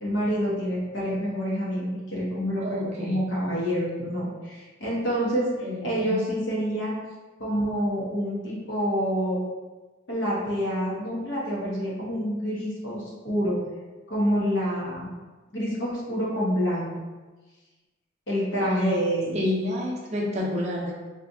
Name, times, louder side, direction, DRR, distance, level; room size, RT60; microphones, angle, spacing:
voice 1, 0.0-5.5 5.8-6.9 7.4-9.4 10.1-13.6 14.1-15.1 15.5-16.9 18.3-19.4, equal, 60° left, -6 dB, 1.0 m, -27 dB
voice 2, 2.6-3.2 5.6-6.1 18.6-19.0 19.3-20.9, left 1 dB, 30° right, -3 dB, 0.6 m, -29 dB
2.7 x 2.5 x 3.5 m, 1.3 s
head